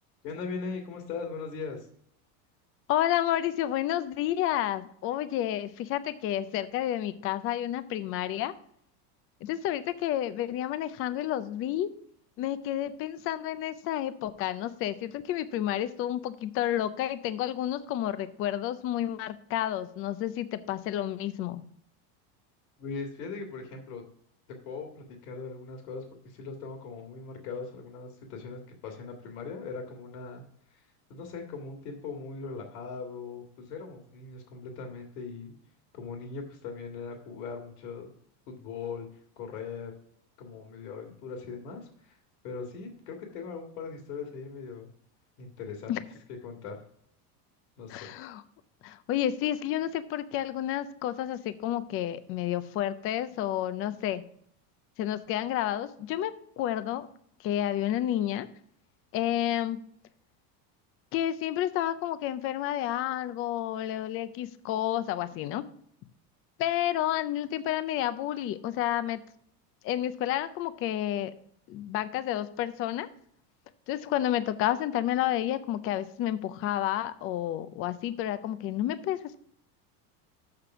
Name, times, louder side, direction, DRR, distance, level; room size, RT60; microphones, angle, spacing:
voice 1, 0.2-1.9 22.8-24.0 24.5-35.5 35.9-38.1 38.5-39.9 40.4-44.9 45.4-46.0 46.4-46.8 47.8-48.1, left 5 dB, 80° left, 2 dB, 2.0 m, -40 dB
voice 2, 2.9-8.5 9.4-11.9 12.4-21.6 45.9-46.0 47.9-48.4 48.8-54.2 55.0-57.1 57.4-58.5 59.1-59.8 61.1-65.6 66.6-69.2 69.8-71.3 71.7-73.1 73.9-79.4, left 12 dB, 30° left, 13 dB, 0.4 m, -30 dB
6.8 x 5.8 x 5.9 m, 0.66 s
supercardioid pair, 140°, 47 cm